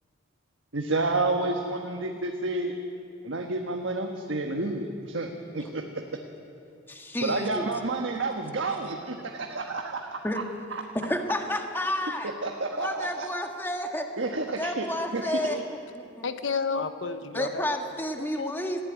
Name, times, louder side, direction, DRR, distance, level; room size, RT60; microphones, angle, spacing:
voice 1, 0.7-2.8 3.2-6.0 7.2-10.2 10.7-10.8 12.4-13.3 14.2-14.9 15.1-15.4, right 2 dB, 75° right, 2 dB, 1.4 m, -30 dB
voice 2, 6.9-7.7 10.2-10.5 10.9-12.3 12.8-14.1 14.5-16.2 17.3-18.8, left 1 dB, 10° left, 3 dB, 1.6 m, -31 dB
voice 3, 16.2-17.7 18.2-18.5, left 4 dB, 75° left, 10 dB, 1.1 m, -31 dB
19.0 x 15.0 x 9.6 m, 2.5 s
head